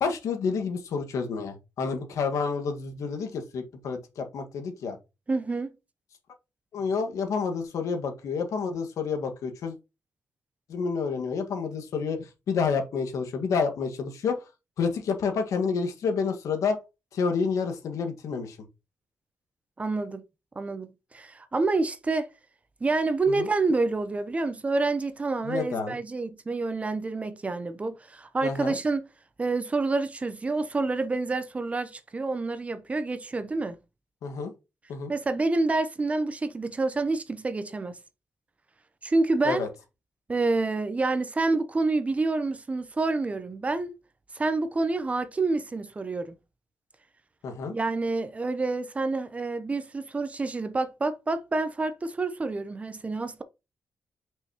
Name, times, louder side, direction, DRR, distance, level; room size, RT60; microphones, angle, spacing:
voice 1, 0.0-5.0 6.7-9.8 10.7-14.4 14.8-16.8 17.1-18.6 23.4-23.5 25.4-26.0 28.4-28.8 34.2-34.5 34.9-35.1 39.4-39.7 47.4-47.7, left 5 dB, 85° left, 1.7 m, -29 dB
voice 2, 5.3-5.7 19.8-20.2 20.6-20.9 21.1-22.3 22.8-29.1 29.4-33.8 35.1-38.0 39.0-39.7 40.3-43.9 44.3-46.4 47.7-53.4, right 3 dB, 25° right, 0.8 m, -28 dB
5.9 x 5.6 x 3.0 m
wide cardioid pair, 130°, 5 cm